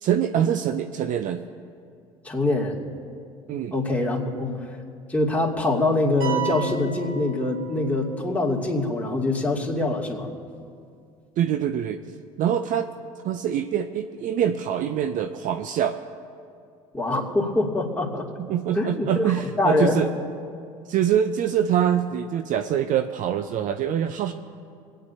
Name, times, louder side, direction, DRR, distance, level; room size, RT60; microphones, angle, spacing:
voice 1, 0.0-1.4 3.5-3.7 11.4-12.0 12.4-12.9 13.2-16.0 18.4-20.1 20.9-24.3, right 9 dB, 50° right, 8 dB, 0.6 m, -24 dB
voice 2, 2.2-2.8 3.7-4.5 5.1-10.3 16.9-18.3 18.7-19.3 19.6-20.0, left 2 dB, 10° left, -3 dB, 2.6 m, -24 dB
sound 1, 6.2-8.1, right 11 dB, 65° right, 3.7 m, -33 dB
26.0 x 9.2 x 2.8 m, 2.4 s
hypercardioid pair, 65°, 18 cm